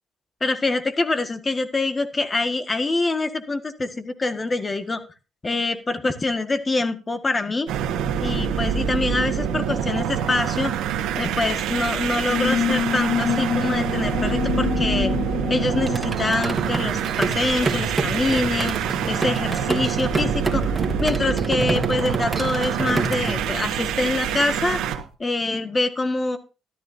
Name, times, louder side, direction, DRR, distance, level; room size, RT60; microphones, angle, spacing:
voice 1, 0.4-5.0 5.4-7.7 8.2-10.7 11.1-15.1 15.5-18.8 19.1-24.8 25.2-26.4, left 2 dB, 25° left, 8 dB, 1.7 m, -25 dB
sound 1, 7.7-25.0, right 8 dB, 90° right, 1.5 m, -26 dB
sound 2, 12.3-17.5, left 8 dB, 60° left, 0.5 m, -27 dB
sound 3, 15.8-23.3, right 3 dB, 20° right, 2.6 m, -28 dB
13.0 x 13.0 x 2.7 m, 0.32 s
cardioid pair, 90°, 0 cm